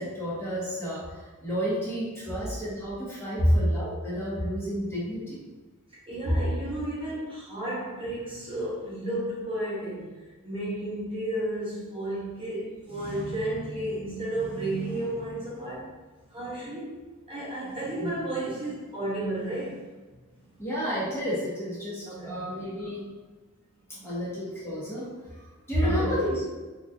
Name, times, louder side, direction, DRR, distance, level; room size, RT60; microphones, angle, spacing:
voice 1, 0.0-5.4 18.0-18.1 20.6-23.1 24.0-26.5, equal, 10° left, -8 dB, 1.1 m, -32 dB
voice 2, 6.1-10.2 10.4-15.9 16.3-17.0 17.3-19.8 22.1-22.4 23.9-24.1 25.8-26.2, right 1 dB, 25° right, -8 dB, 0.9 m, -31 dB
4.0 x 2.7 x 2.4 m, 1.3 s
head